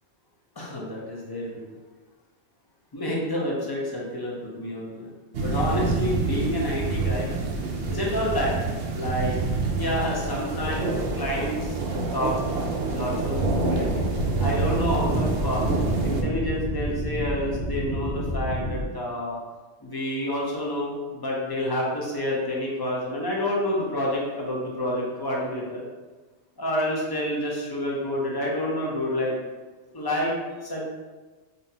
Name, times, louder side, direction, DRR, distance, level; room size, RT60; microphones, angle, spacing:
voice 1, 0.6-1.7 2.9-7.3 7.9-8.5 8.9-9.4 9.8-11.8 12.1-12.4 12.9-14.0 14.4-15.6 16.0-19.4 19.8-25.8 26.6-29.4 29.9-30.8, left 1 dB, 25° left, -4 dB, 0.6 m, -28 dB
sound 1, 5.3-16.2, right 3 dB, 75° right, 0.9 m, -27 dB
sound 2, 13.2-18.8, equal, 70° left, 1.6 m, -30 dB
5.3 x 2.3 x 2.7 m, 1.3 s
omnidirectional pair, 1.2 m